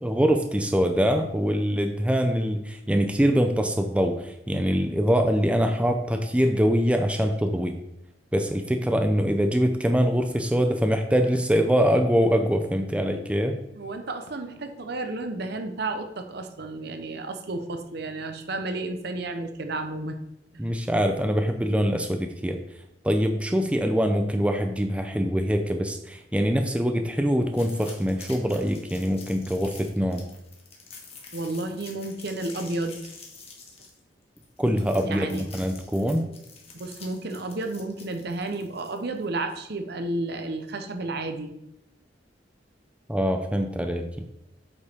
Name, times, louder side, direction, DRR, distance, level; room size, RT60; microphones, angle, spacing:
voice 1, 0.0-7.8 8.3-13.6 20.6-22.6 23.0-30.3 34.6-36.3 43.1-44.3, equal, 5° right, 5 dB, 0.5 m, -24 dB
voice 2, 13.7-20.2 31.3-33.0 35.0-35.5 36.7-41.5, right 2 dB, 60° right, 6 dB, 0.8 m, -32 dB
sound 1, 27.5-39.2, left 4 dB, 35° left, 1.4 m, -47 dB
8.2 x 5.4 x 3.5 m, 0.83 s
head